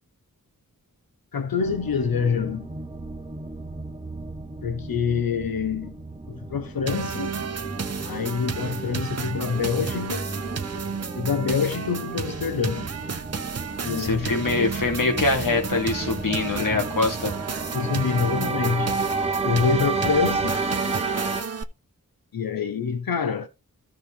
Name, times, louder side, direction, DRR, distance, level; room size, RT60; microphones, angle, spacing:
voice 1, 1.3-2.7 4.6-6.0 6.3-7.3 8.0-10.3 11.1-12.9 13.8-14.7 16.5-16.9 17.7-19.0 19.4-20.6 22.3-23.5, left 6 dB, 85° left, 1.0 m, -26 dB
sound 1, 1.6-21.4, right 3 dB, 20° right, 1.1 m, -32 dB
sound 2, 6.9-21.6, right 6 dB, 45° right, 0.8 m, -33 dB
voice 2, 14.0-17.3, left 3 dB, 65° left, 2.6 m, -24 dB
14.0 x 5.0 x 3.4 m
wide cardioid pair, 80°, 34 cm